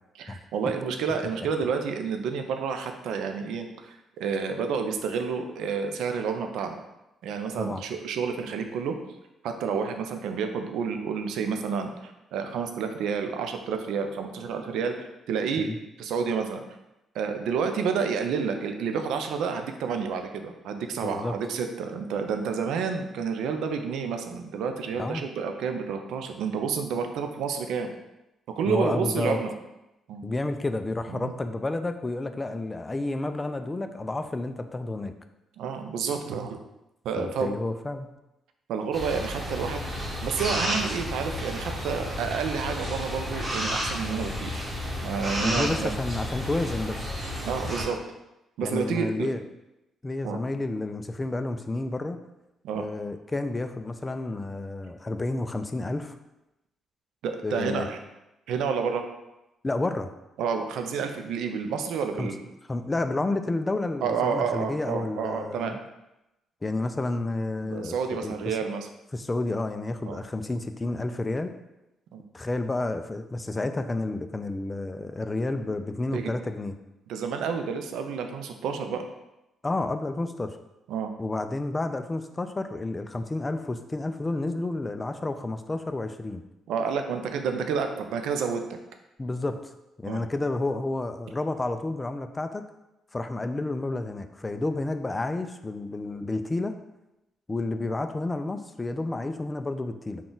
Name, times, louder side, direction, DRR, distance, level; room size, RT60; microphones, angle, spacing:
voice 1, 0.2-6.8 7.2-9.0 9.4-15.7 16.0-16.6 17.1-27.9 28.6-29.5 30.1-30.2 31.1-31.3 35.6-36.6 37.0-37.5 38.7-44.6 45.0-45.9 47.4-48.0 48.6-49.3 50.2-50.4 52.6-52.8 57.2-58.0 58.5-59.0 60.4-62.4 64.0-65.8 67.6-68.9 70.1-70.2 72.1-72.2 76.1-76.3 77.1-79.1 80.9-81.1 86.7-88.6 90.0-90.2, right 6 dB, 85° right, 6 dB, 0.4 m, -29 dB
voice 2, 21.0-21.3 25.0-25.2 28.7-29.4 30.2-35.1 37.2-38.1 45.4-47.1 48.6-49.4 50.0-52.2 52.7-56.2 57.4-57.9 59.6-60.1 62.2-62.3 62.7-65.8 66.6-68.6 69.1-71.5 72.3-76.7 79.6-80.6 81.2-86.4 89.2-89.7 90.0-92.7 93.1-96.7 97.5-100.2, left 2 dB, 20° left, 8 dB, 0.3 m, -30 dB
sound 1, 38.9-47.8, equal, 25° right, 1.1 m, -32 dB
3.9 x 2.3 x 3.8 m, 0.94 s
cardioid pair, 90°, 0 cm